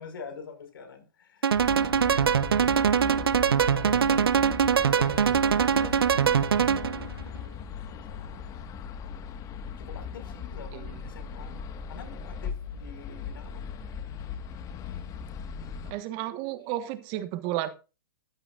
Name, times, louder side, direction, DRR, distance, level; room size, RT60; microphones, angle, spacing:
voice 1, 0.0-4.4 4.7-7.5 7.8-8.7 9.8-11.6 11.9-13.6, left 5 dB, 70° left, 5.5 m, -46 dB
sound 1, 1.4-7.1, right 7 dB, 85° right, 0.7 m, -23 dB
sound 2, 1.5-15.9, left 7 dB, 30° left, 1.7 m, -39 dB
voice 2, 15.9-17.7, right 14 dB, 40° right, 1.5 m, -32 dB
14.0 x 12.5 x 2.5 m
hypercardioid pair, 120°, 12 cm